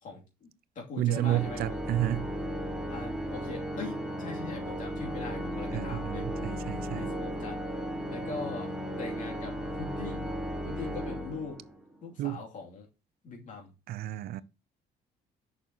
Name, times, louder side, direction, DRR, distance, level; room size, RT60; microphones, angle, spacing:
voice 1, 0.0-0.5 0.7-1.8 2.9-6.4 6.9-7.6 8.1-10.3 10.6-11.6 12.0-12.9 13.2-13.7, left 4 dB, 50° left, 2.7 m, -42 dB
voice 2, 1.0-2.3 5.7-7.1 12.2-12.4 13.9-14.4, right 14 dB, 65° right, 0.4 m, -31 dB
Organ, 1.1-11.9, equal, 5° right, 1.5 m, -35 dB
6.7 x 6.2 x 2.9 m
cardioid pair, 110°, 17 cm